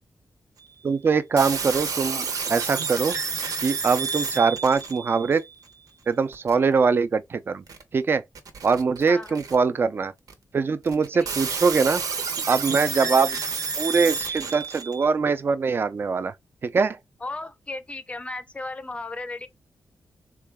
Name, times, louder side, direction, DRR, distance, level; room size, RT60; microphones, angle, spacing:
voice 1, 0.8-3.1 3.6-5.4 6.1-7.6 7.9-8.2 8.6-10.1 10.5-12.0 12.5-13.4 13.8-16.3 16.6-17.0, right 5 dB, 35° right, 0.4 m, -22 dB
sound 1, 1.4-5.4 6.3-6.5 7.7-7.8 8.3-9.5 10.3-10.4 10.9-15.0, right 5 dB, 75° right, 0.9 m, -30 dB
voice 2, 17.2-19.5, left 2 dB, 20° left, 0.5 m, -35 dB
3.7 x 2.3 x 3.4 m
wide cardioid pair, 170°, 6 cm